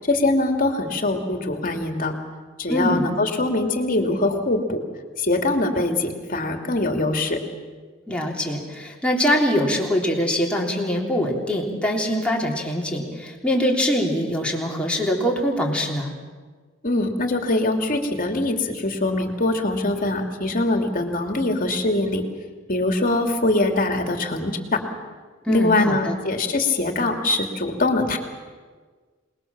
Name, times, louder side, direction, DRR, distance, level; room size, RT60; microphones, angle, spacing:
voice 1, 0.0-2.1 2.6-4.8 5.2-7.4 16.8-22.2 22.7-24.8 25.5-28.2, left 2 dB, 45° left, 4 dB, 2.8 m, -23 dB
voice 2, 2.7-3.1 8.1-16.2 25.5-26.2, equal, 5° left, -2 dB, 3.7 m, -23 dB
27.0 x 20.5 x 7.3 m, 1.5 s
head